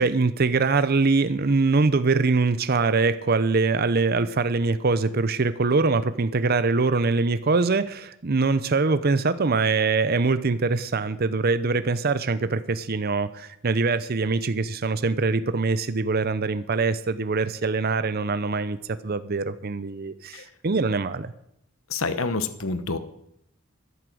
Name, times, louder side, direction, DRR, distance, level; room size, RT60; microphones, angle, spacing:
voice 1, 0.0-21.3, right 3 dB, 45° right, 13 dB, 0.6 m, -23 dB
voice 2, 21.9-23.0, left 3 dB, 75° left, 11 dB, 1.1 m, -27 dB
13.5 x 11.0 x 6.3 m, 0.77 s
head